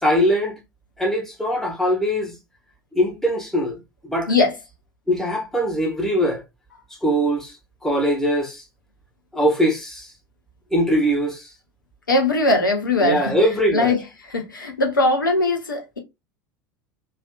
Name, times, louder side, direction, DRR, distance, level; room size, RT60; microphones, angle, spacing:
voice 1, 0.0-0.6 1.0-2.3 2.9-3.8 4.0-4.3 5.1-6.4 7.0-7.5 7.8-8.6 9.3-10.1 10.7-11.5 13.0-13.9, equal, 5° left, 1.3 m, -21 dB
voice 2, 12.1-13.3 13.7-14.0 14.3-16.0, left 2 dB, 85° left, 0.9 m, -20 dB
3.2 x 2.9 x 2.4 m
figure-of-eight pair, 75°, 10 cm